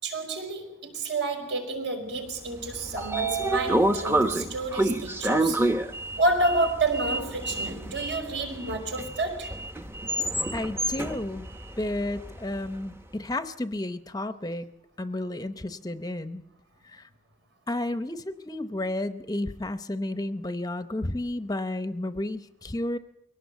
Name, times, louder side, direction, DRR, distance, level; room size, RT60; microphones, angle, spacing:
voice 1, 0.0-5.7 6.2-9.5, right 2 dB, 65° right, 4 dB, 5.3 m, -29 dB
Sliding door, 2.5-12.7, right 1 dB, 10° right, 0.9 m, -28 dB
voice 2, 10.5-11.5 11.8-14.7 15.0-16.4 16.8-17.1 17.7-23.0, left 1 dB, 20° left, 11 dB, 0.7 m, -32 dB
23.0 x 18.0 x 8.1 m, 0.79 s
head